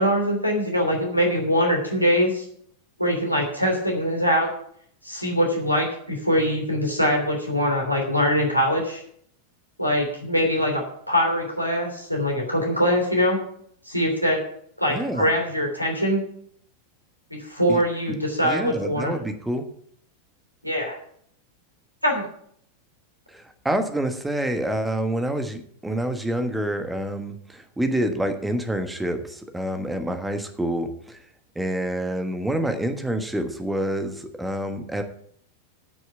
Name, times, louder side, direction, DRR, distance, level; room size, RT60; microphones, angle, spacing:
voice 1, 0.0-2.4 3.0-4.5 5.0-9.0 9.8-13.4 13.9-14.4 14.8-16.2 17.3-19.1 20.6-21.0 22.0-22.2, equal, 90° left, 0 dB, 2.9 m, -23 dB
voice 2, 14.9-15.3 17.7-17.8 18.4-19.6 23.3-31.2 31.5-35.0, right 1 dB, 5° right, 7 dB, 1.3 m, -27 dB
9.1 x 6.4 x 8.4 m, 0.65 s
figure-of-eight pair, 90°, 0 cm